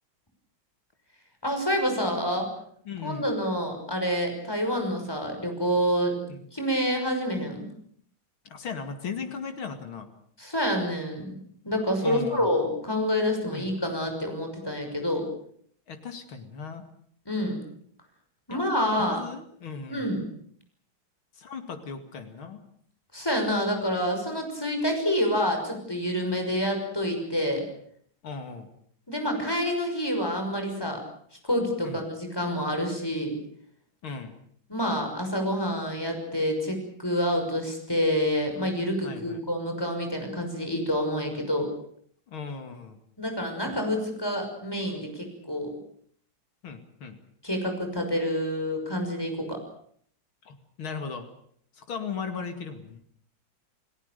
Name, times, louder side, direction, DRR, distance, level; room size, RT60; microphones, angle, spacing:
voice 1, 1.4-2.5 3.0-6.2 6.5-7.6 10.4-11.3 11.6-15.3 17.3-17.6 18.5-19.2 19.9-20.2 23.1-27.6 29.1-31.0 31.5-33.4 34.7-41.7 43.2-45.8 47.4-49.6, equal, 10° left, 4 dB, 6.1 m, -27 dB
voice 2, 2.9-3.3 6.3-6.5 8.4-10.1 12.0-12.5 13.5-13.7 15.9-16.8 18.5-18.6 19.0-20.1 21.3-22.6 28.2-28.7 31.8-32.0 34.0-34.4 39.0-39.5 42.3-43.0 46.6-47.2 50.4-51.3 51.7-53.0, left 5 dB, 90° left, 6 dB, 3.1 m, -37 dB
29.5 x 18.0 x 6.8 m, 0.62 s
omnidirectional pair, 2.2 m